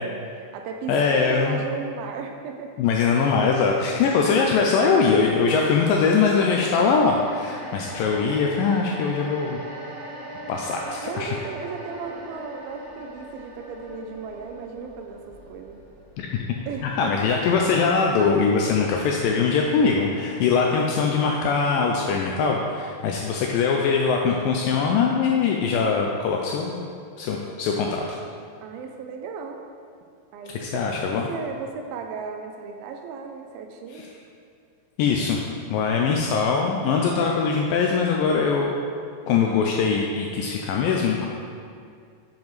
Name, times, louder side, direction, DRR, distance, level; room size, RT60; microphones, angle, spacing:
voice 1, 0.0-2.7 11.0-15.8 16.7-17.3 28.6-29.6 30.3-30.9 31.3-34.1, right 5 dB, 80° right, 4 dB, 2.2 m, -35 dB
voice 2, 0.9-1.6 2.8-9.6 10.5-11.4 16.2-16.3 16.8-26.9 27.2-28.0 30.6-31.3 33.9-34.1 35.0-35.4 35.7-38.7 39.3-41.3, left 5 dB, 85° left, 0 dB, 2.0 m, -22 dB
sound 1, 4.2-18.5 18.9-19.0, equal, 50° right, 0.9 m, -41 dB
7.3 x 7.2 x 3.1 m, 2.3 s
omnidirectional pair, 4.4 m